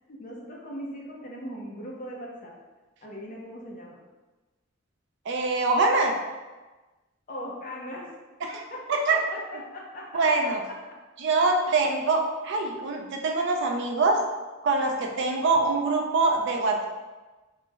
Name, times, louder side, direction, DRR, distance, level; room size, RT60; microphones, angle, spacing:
voice 1, 0.1-2.5 3.0-4.0 7.3-8.1 8.7-8.8 9.1-9.2 9.5-10.7, equal, 40° left, -2 dB, 0.6 m, -39 dB
voice 2, 5.3-6.1 8.4-8.6 8.9-9.2 10.1-10.6 11.2-14.2 14.6-16.8, right 3 dB, 60° right, 2 dB, 0.4 m, -24 dB
3.1 x 2.0 x 3.4 m, 1.2 s
head